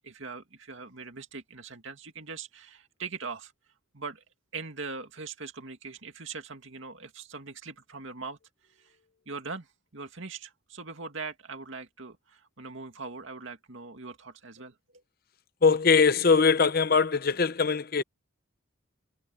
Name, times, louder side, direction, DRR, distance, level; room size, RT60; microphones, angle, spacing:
voice 1, 0.0-3.5 3.9-4.2 4.5-8.4 8.8-8.9 9.3-14.7, right 4 dB, 70° right, 2.3 m, -41 dB
voice 2, 15.6-18.0, left 5 dB, 45° left, 0.7 m, -22 dB
head